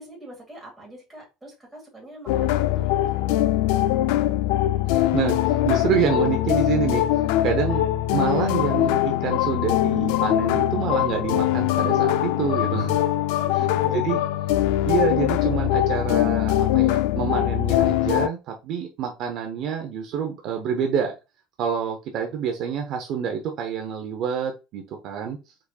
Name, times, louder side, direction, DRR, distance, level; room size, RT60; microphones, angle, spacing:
voice 1, 0.0-3.4 13.3-14.1, right 1 dB, 5° right, 2.0 m, -43 dB
sound 1, 2.3-18.3, left 13 dB, 85° left, 0.3 m, -22 dB
voice 2, 4.9-7.0 7.4-13.0 13.5-13.7 13.9-14.2 14.8-21.1 21.6-25.4, right 7 dB, 45° right, 0.7 m, -27 dB
4.7 x 4.1 x 2.3 m
cardioid pair, 170°, 0 cm